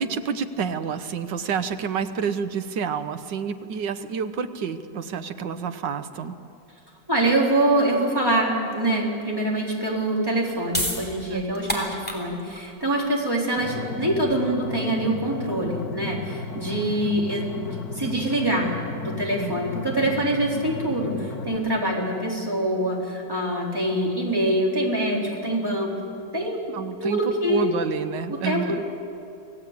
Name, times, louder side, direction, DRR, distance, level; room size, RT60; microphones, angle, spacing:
voice 1, 0.0-6.4 11.3-11.7 19.4-19.6 26.7-27.2 27.5-28.8, right 6 dB, 90° right, 9 dB, 1.7 m, -29 dB
voice 2, 7.1-18.7 19.0-25.9 26.3-26.7 27.0-27.7 28.3-28.9, right 1 dB, 10° right, -3 dB, 4.1 m, -25 dB
sound 1, 10.5-17.0, equal, 5° left, 3.3 m, -34 dB
sound 2, 13.6-21.6, left 3 dB, 60° left, 2.3 m, -34 dB
27.0 x 17.5 x 8.4 m, 2.6 s
omnidirectional pair, 1.9 m